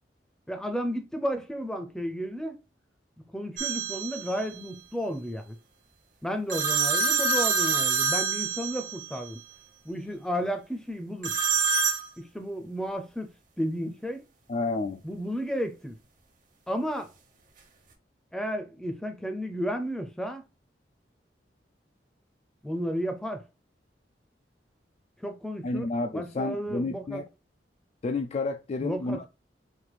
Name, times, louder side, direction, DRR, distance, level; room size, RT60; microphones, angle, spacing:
voice 1, 0.5-2.6 3.3-5.6 6.2-9.4 9.8-11.3 12.2-13.3 13.6-14.2 15.0-15.9 16.7-17.1 18.3-20.4 22.6-23.4 25.2-25.9 26.1-27.2 28.8-29.3, equal, 5° left, 0.6 m, -32 dB
sound 1, 3.6-4.3 6.5-9.1 11.2-12.0, right 5 dB, 50° right, 1.2 m, -26 dB
voice 2, 14.5-15.0 25.6-27.2 28.0-29.3, left 3 dB, 40° left, 0.3 m, -30 dB
4.5 x 2.5 x 4.0 m
head